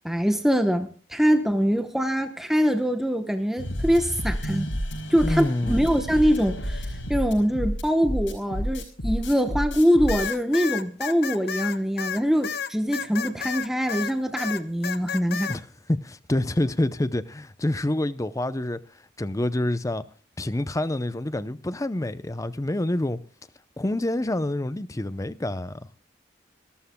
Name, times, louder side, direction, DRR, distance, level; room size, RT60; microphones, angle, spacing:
voice 1, 0.0-4.7 5.1-6.8 7.1-15.5, equal, ahead, 1.0 m, -23 dB
sound 1, 3.6-10.3, equal, 80° left, 5.1 m, -30 dB
voice 2, 5.2-5.9 15.5-18.8 19.2-20.0 20.4-23.2 23.8-25.8, left 1 dB, 15° left, 0.6 m, -27 dB
sound 2, 10.1-14.1 14.4-15.6, left 7 dB, 55° left, 0.9 m, -31 dB
27.0 x 13.0 x 2.2 m
head